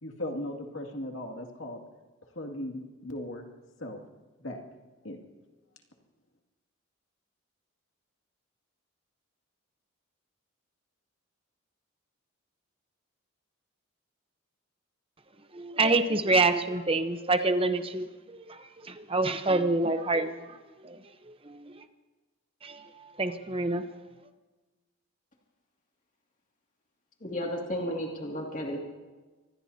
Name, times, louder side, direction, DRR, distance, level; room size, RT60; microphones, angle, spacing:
voice 1, 0.0-1.8 2.4-3.4 3.8-4.0 4.4-4.6 5.0-5.2, left 1 dB, 70° left, 2 dB, 2.3 m, -37 dB
voice 2, 15.5-21.0 21.3-21.8 22.6-23.8, right 3 dB, 25° right, 8 dB, 0.9 m, -27 dB
voice 3, 27.2-28.8, equal, 35° left, -1 dB, 2.4 m, -33 dB
25.5 x 19.5 x 2.8 m, 1.2 s
head